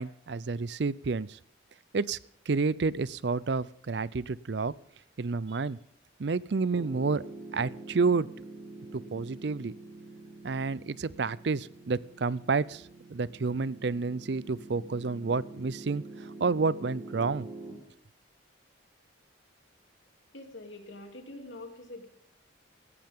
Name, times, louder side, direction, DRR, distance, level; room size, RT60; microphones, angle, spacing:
voice 1, 0.0-1.4 1.9-2.2 2.5-4.7 5.2-5.8 6.2-7.2 7.5-8.3 8.9-9.7 10.4-17.5, right 4 dB, 60° right, 20 dB, 0.5 m, -30 dB
Piano, 6.7-17.7, right 2 dB, 25° right, 4.4 m, -46 dB
voice 2, 20.3-22.1, left 2 dB, 75° left, 4 dB, 3.0 m, -45 dB
18.0 x 14.5 x 3.7 m, 0.68 s
head